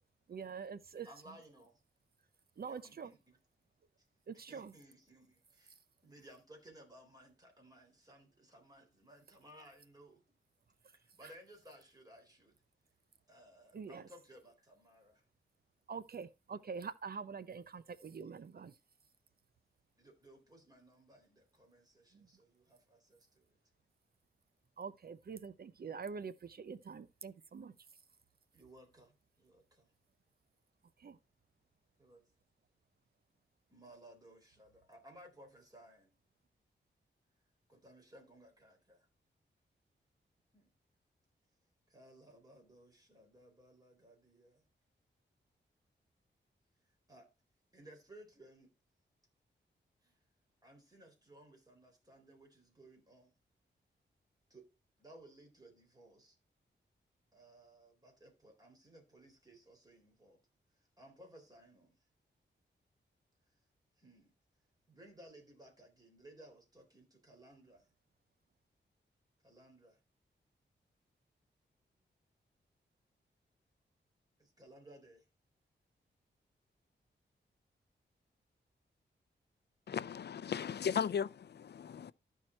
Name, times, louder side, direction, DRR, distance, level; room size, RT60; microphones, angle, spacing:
voice 1, 0.3-1.1 2.6-3.1 4.3-4.7 13.7-14.1 15.9-18.8 22.1-22.3 24.8-27.7 31.0-31.2, right 5 dB, 55° right, 0.6 m, -45 dB
voice 2, 1.0-1.8 2.6-3.4 4.0-4.1 4.3-10.2 10.9-12.6 13.3-15.2 20.0-23.6 28.5-29.9 32.0-32.3 33.7-36.1 37.7-39.0 40.5-40.7 41.9-44.6 47.1-47.3 47.7-48.7 50.0-50.2 50.6-53.3 54.5-54.7 55.0-56.4 57.3-60.4 60.7-62.0 63.5-63.6 64.0-64.3 64.9-67.9 69.4-70.0 74.4-75.3, right 1 dB, 20° right, 4.0 m, -59 dB
voice 3, 79.9-82.1, left 7 dB, 60° left, 0.5 m, -36 dB
13.0 x 4.6 x 4.4 m
cardioid pair, 75°, 19 cm